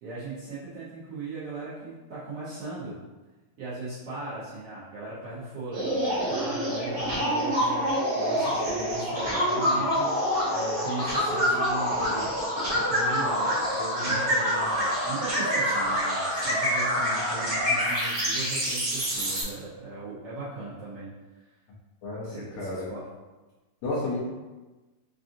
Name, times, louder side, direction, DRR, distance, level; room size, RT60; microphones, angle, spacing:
voice 1, 0.0-3.0 3.6-7.8 8.1-12.3 12.7-21.1 22.3-23.1, right 2 dB, 90° right, -11 dB, 1.3 m, -38 dB
sound 1, 5.7-19.4, equal, 55° right, 1.2 m, -26 dB
voice 2, 9.6-9.9 14.1-14.2 22.0-22.9 23.8-24.2, left 2 dB, 75° left, -6 dB, 1.8 m, -33 dB
5.5 x 2.5 x 2.6 m, 1.2 s
omnidirectional pair, 3.9 m